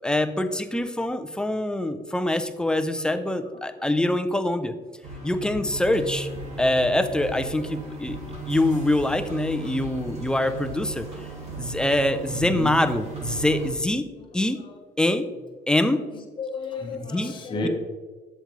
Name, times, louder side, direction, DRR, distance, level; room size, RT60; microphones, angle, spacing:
voice 1, 0.0-4.7 5.2-6.3 6.6-8.2 8.5-11.1 11.6-14.0 14.3-14.6 15.0-15.3 15.7-16.0 16.9-17.3 17.6-17.7, left 1 dB, 5° left, 9 dB, 0.5 m, -24 dB
voice 2, 3.0-3.6 12.3-12.8 14.2-14.3 14.5-14.8 15.9-17.7, left 3 dB, 30° left, 1 dB, 1.2 m, -34 dB
sound 1, 5.0-13.7, right 3 dB, 40° right, 2.5 m, -36 dB
7.8 x 6.7 x 3.2 m, 1.4 s
cardioid pair, 110°, 17 cm